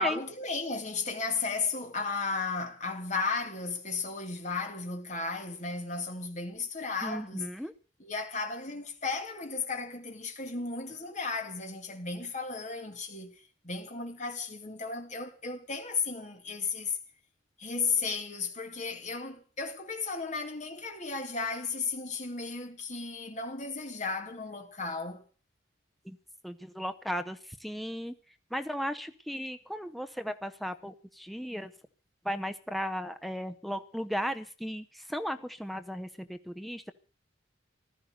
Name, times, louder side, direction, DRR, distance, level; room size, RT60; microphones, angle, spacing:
voice 1, 0.0-7.5 8.0-13.3 13.6-17.0 17.6-25.2, left 4 dB, 35° left, 2.5 m, -34 dB
voice 2, 7.0-7.7 26.1-26.2 26.4-28.1 28.5-31.7 32.2-36.9, equal, ahead, 0.8 m, -36 dB
15.5 x 13.0 x 6.6 m
head